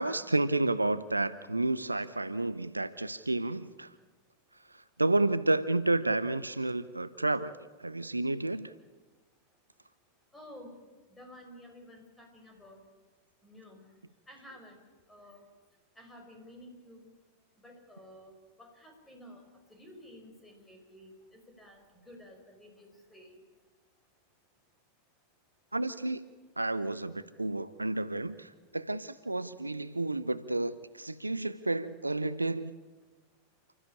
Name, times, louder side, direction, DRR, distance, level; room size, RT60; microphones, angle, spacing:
voice 1, 0.0-3.9 4.7-7.5 7.8-8.7 25.7-26.2 26.6-32.7, right 2 dB, 85° right, 15 dB, 0.7 m, -31 dB
voice 2, 10.3-10.7 11.2-12.8 13.4-13.8 14.3-14.8 15.1-15.4 16.0-17.1 17.6-18.3 18.6-19.4 19.7-21.2 21.6-23.3, left 1 dB, 10° left, 3 dB, 5.7 m, -52 dB
29.5 x 13.5 x 8.7 m, 1.3 s
figure-of-eight pair, 90°, 0 cm